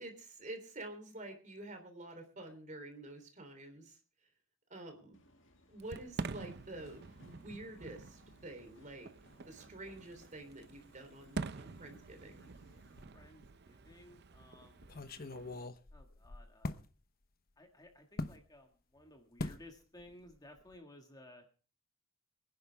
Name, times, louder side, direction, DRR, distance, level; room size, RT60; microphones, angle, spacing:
voice 1, 0.0-4.0 4.7-5.2 5.7-9.1 9.5-12.4, right 2 dB, 40° right, 5 dB, 3.5 m, -48 dB
Subway metro underground, 5.1-13.0, left 1 dB, 70° left, 2.1 m, -65 dB
Fireworks, 5.8-15.7, right 3 dB, 55° right, 0.6 m, -47 dB
sound 1, 13.0-13.6 13.9-14.0 14.8-16.9 18.2-18.4 19.4-19.7 20.0-20.3 20.6-20.8, left 2 dB, 50° left, 0.9 m, -42 dB
voice 2, 13.1-15.0 15.9-16.8 17.6-21.5, left 1 dB, 20° left, 3 dB, 1.9 m, -57 dB
23.5 x 10.5 x 3.5 m, 0.37 s
head